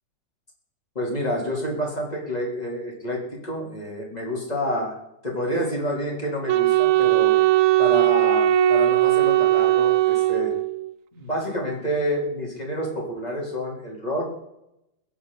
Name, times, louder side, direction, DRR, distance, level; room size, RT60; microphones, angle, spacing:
voice 1, 1.0-5.0 5.2-7.4 7.8-10.5 11.1-14.3, equal, 20° left, -2 dB, 4.0 m, -28 dB
Wind instrument woodwind instrument, 6.5-10.9, right 13 dB, 70° right, 0.8 m, -19 dB
22.0 x 10.0 x 4.2 m, 0.86 s
omnidirectional pair, 2.0 m